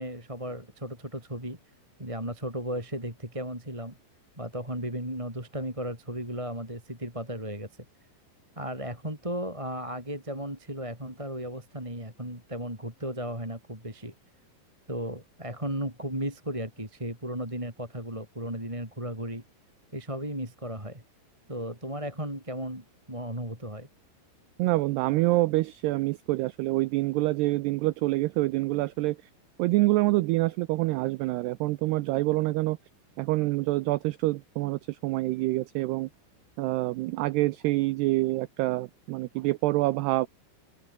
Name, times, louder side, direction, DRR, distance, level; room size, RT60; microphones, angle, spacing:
voice 1, 0.0-1.6 2.0-4.0 4.4-7.7 8.6-14.1 14.9-19.4 19.9-21.0 21.5-23.9, right 1 dB, 5° right, 4.6 m, -35 dB
voice 2, 24.6-29.2 29.6-32.8 33.2-36.1 36.6-40.3, right 19 dB, 90° right, 2.3 m, -26 dB
open air
omnidirectional pair, 5.5 m